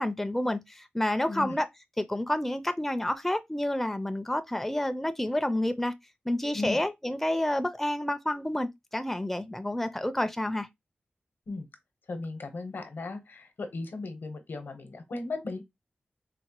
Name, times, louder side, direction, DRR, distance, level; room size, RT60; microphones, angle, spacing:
voice 1, 0.0-1.7 2.0-5.9 6.3-10.7, left 1 dB, 5° left, 0.4 m, -29 dB
voice 2, 12.1-15.6, left 3 dB, 80° left, 0.8 m, -36 dB
3.9 x 2.1 x 2.9 m
wide cardioid pair, 70°, 4 cm